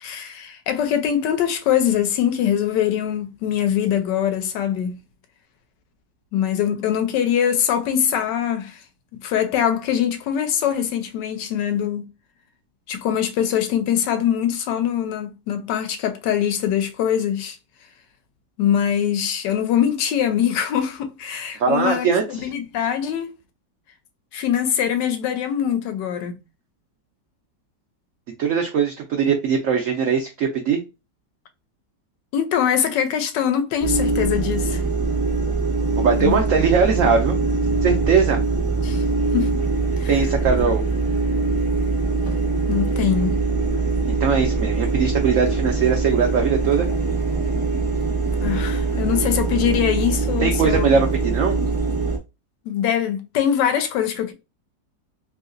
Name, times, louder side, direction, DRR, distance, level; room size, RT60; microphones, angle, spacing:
voice 1, 0.0-5.0 6.3-8.8 9.1-12.1 12.9-17.6 18.6-23.3 24.3-26.4 32.3-34.8 36.2-36.4 38.8-39.0 39.3-39.6 40.0-40.1 42.7-43.4 48.4-51.0 52.7-54.3, left 9 dB, 75° left, 1.2 m, -23 dB
voice 2, 21.6-22.2 28.4-30.8 36.0-37.4 37.8-38.4 40.1-40.8 44.1-46.9 50.4-51.6, right 6 dB, 75° right, 0.7 m, -20 dB
sound 1, 33.8-52.2, right 3 dB, 25° right, 0.3 m, -22 dB
3.1 x 2.7 x 2.5 m
omnidirectional pair, 2.0 m